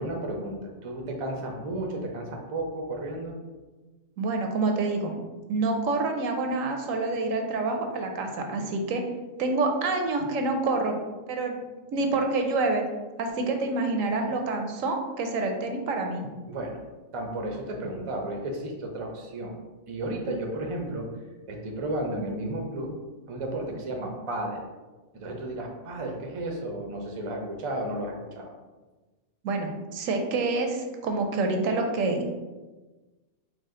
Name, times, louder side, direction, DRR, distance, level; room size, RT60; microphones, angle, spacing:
voice 1, 0.0-3.3 16.5-16.8 17.1-19.5 19.9-21.0 21.5-22.9 23.3-24.6 25.1-28.5, right 1 dB, 40° right, 1 dB, 0.4 m, -33 dB
voice 2, 4.2-5.1 5.5-9.0 9.4-11.0 11.3-11.6 11.9-12.8 13.2-16.2 29.4-32.4, right 3 dB, 80° right, 4 dB, 1.0 m, -27 dB
4.7 x 2.3 x 3.7 m, 1.2 s
omnidirectional pair, 1.4 m